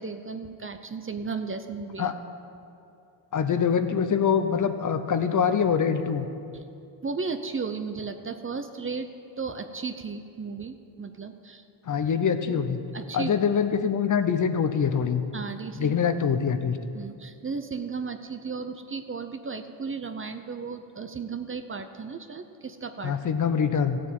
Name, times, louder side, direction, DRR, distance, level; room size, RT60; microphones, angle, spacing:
voice 1, 0.0-2.1 7.0-9.1 9.4-11.6 12.5-12.6 12.9-13.4 15.3-16.0 16.9-23.1, right 5 dB, 25° right, 8 dB, 0.7 m, -35 dB
voice 2, 3.3-6.3 11.9-12.8 13.1-15.2 15.8-16.8 23.0-24.0, left 7 dB, 40° left, 9 dB, 0.9 m, -24 dB
14.5 x 7.4 x 8.7 m, 2.5 s
cardioid pair, 100°, 49 cm